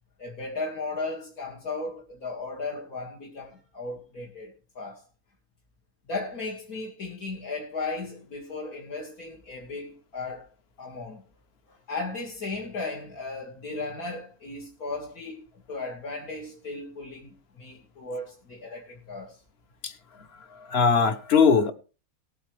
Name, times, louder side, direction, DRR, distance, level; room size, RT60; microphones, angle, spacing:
voice 1, 0.2-5.0 6.1-10.5 10.8-11.2 11.7-19.4, left 3 dB, 70° left, 2.4 m, -36 dB
voice 2, 20.6-21.7, left 5 dB, 50° left, 1.0 m, -20 dB
19.0 x 8.6 x 3.1 m
omnidirectional pair, 1.6 m